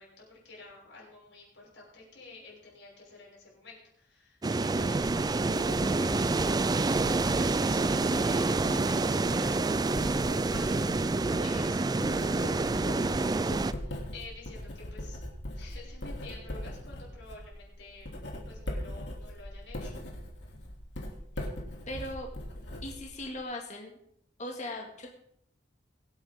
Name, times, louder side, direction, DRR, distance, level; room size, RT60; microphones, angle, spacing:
voice 1, 0.0-10.9 11.4-15.2 15.5-18.1 18.4-19.9, left 3 dB, 85° left, -4 dB, 6.3 m, -50 dB
sound 1, 4.4-13.7, right 3 dB, 20° right, 0.4 m, -27 dB
Writing, 4.6-23.4, left 1 dB, 70° left, 2.8 m, -40 dB
voice 2, 21.9-22.3 22.8-24.0 24.4-25.1, left 1 dB, 40° left, 0 dB, 2.0 m, -38 dB
23.0 x 8.8 x 3.7 m, 0.74 s
head